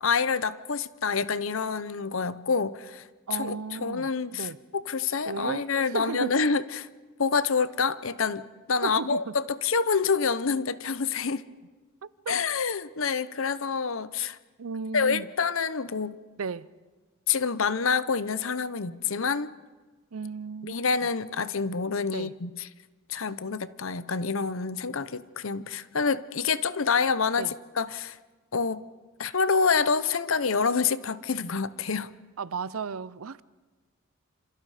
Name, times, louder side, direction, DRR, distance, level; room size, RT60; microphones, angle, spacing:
voice 1, 0.0-3.0 3.3-6.9 7.2-11.5 12.3-14.4 14.9-16.2 17.3-19.5 20.6-22.7 23.1-28.2 28.5-28.8 29.2-32.1, left 5 dB, 70° left, 0.9 m, -27 dB
voice 2, 3.3-4.6 5.3-6.3 8.8-9.3 12.0-12.4 14.6-15.3 16.4-16.7 20.1-20.7 21.0-21.1 22.1-22.3 27.4-27.5 32.4-33.4, right 5 dB, 90° right, 0.6 m, -34 dB
27.5 x 27.0 x 5.0 m
head